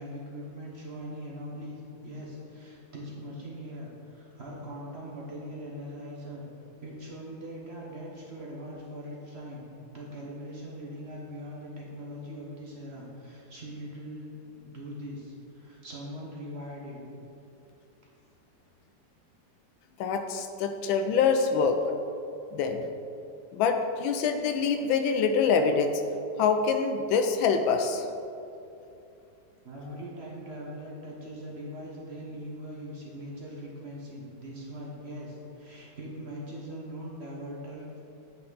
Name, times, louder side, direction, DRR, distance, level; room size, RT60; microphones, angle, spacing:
voice 1, 0.0-6.4 6.8-9.6 9.9-17.0 29.6-38.0, equal, 40° right, -4 dB, 1.1 m, -41 dB
voice 2, 20.0-21.8 22.5-22.9 23.5-26.0 26.4-28.1, left 5 dB, 90° left, 6 dB, 1.4 m, -25 dB
8.9 x 5.6 x 4.0 m, 2.7 s
omnidirectional pair, 2.1 m